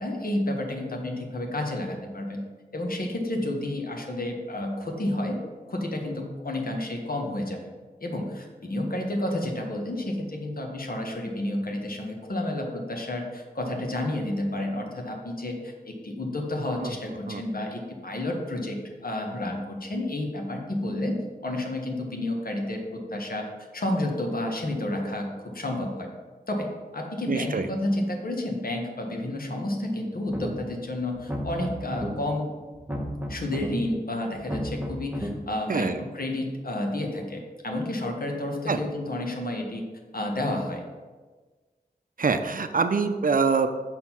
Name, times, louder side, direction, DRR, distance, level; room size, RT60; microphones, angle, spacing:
voice 1, 0.0-2.4 2.7-5.4 5.7-7.6 8.0-23.4 23.7-26.1 26.5-32.5 33.3-39.8 40.1-40.8, left 1 dB, 60° left, 1 dB, 1.4 m, -30 dB
voice 2, 27.3-27.7 35.7-36.0 38.7-38.8 42.2-43.7, right 5 dB, 55° right, 8 dB, 0.5 m, -24 dB
sound 1, 30.3-30.8 31.1-32.1 32.7-33.7 34.3-35.3, equal, 10° right, 1.3 m, -33 dB
6.3 x 4.4 x 5.8 m, 1.4 s
wide cardioid pair, 55°, 17 cm